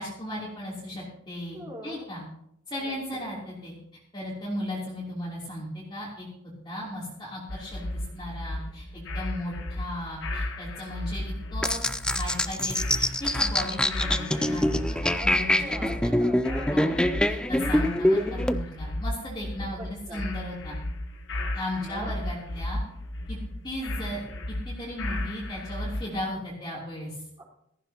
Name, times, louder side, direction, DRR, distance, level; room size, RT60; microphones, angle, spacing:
voice 1, 0.0-2.2 2.7-3.7 4.1-6.3 6.6-16.1 16.7-20.8 21.5-22.8 23.3-23.4 23.6-24.3 24.6-27.2, left 1 dB, 25° left, -7 dB, 3.2 m, -36 dB
voice 2, 1.5-2.1 2.8-3.2 15.2-15.3 15.6-17.3 19.6-20.2 21.8-22.1 27.4-27.5, right 1 dB, 25° right, -4 dB, 4.3 m, -42 dB
sound 1, 7.5-26.2, left 1 dB, 65° left, 1.1 m, -34 dB
sound 2, 11.6-18.6, left 1 dB, 5° left, 0.4 m, -25 dB
17.5 x 14.5 x 2.9 m, 0.76 s
head